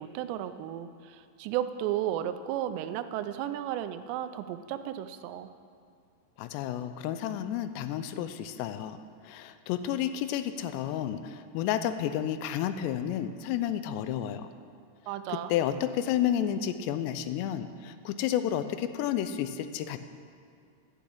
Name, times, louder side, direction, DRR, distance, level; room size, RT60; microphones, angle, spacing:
voice 1, 0.0-5.5 15.1-15.5, right 11 dB, 90° right, 10 dB, 2.8 m, -34 dB
voice 2, 6.4-9.0 9.2-14.5 15.3-20.0, left 10 dB, 85° left, 11 dB, 2.7 m, -31 dB
12.0 x 6.1 x 8.5 m, 2.4 s
omnidirectional pair, 4.9 m